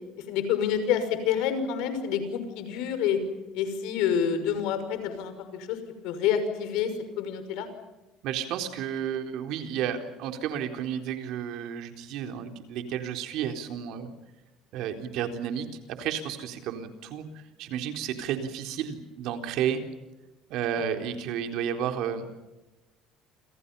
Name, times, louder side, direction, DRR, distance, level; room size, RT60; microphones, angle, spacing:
voice 1, 0.3-3.2 3.5-5.8 6.0-6.9 7.2-7.7 20.8-20.9, left 8 dB, 80° left, 9 dB, 5.9 m, -28 dB
voice 2, 8.2-14.1 14.7-15.7 16.0-19.8 20.5-22.3, right 9 dB, 70° right, 6 dB, 4.1 m, -32 dB
28.5 x 27.5 x 5.6 m, 1.0 s
cardioid pair, 120°, 0 cm